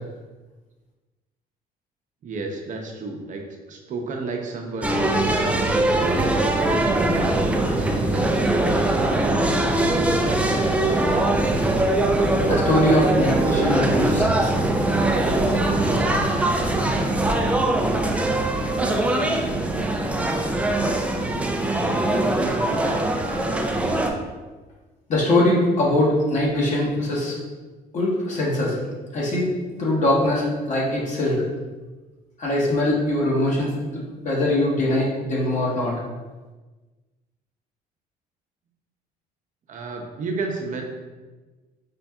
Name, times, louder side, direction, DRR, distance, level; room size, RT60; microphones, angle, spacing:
voice 1, 2.2-3.4 3.7-6.1 7.7-8.3 21.4-23.0 39.7-40.8, right 3 dB, 50° right, 2 dB, 0.6 m, -32 dB
sound 1, 4.8-24.1, right 2 dB, 5° right, 0.3 m, -21 dB
voice 2, 12.5-14.6 15.5-15.6 25.1-27.4 27.9-28.8 29.1-29.5 29.8-31.4 32.4-36.0, left 1 dB, 45° left, -5 dB, 1.2 m, -22 dB
5.1 x 2.6 x 2.3 m, 1.3 s
cardioid pair, 110°, 17 cm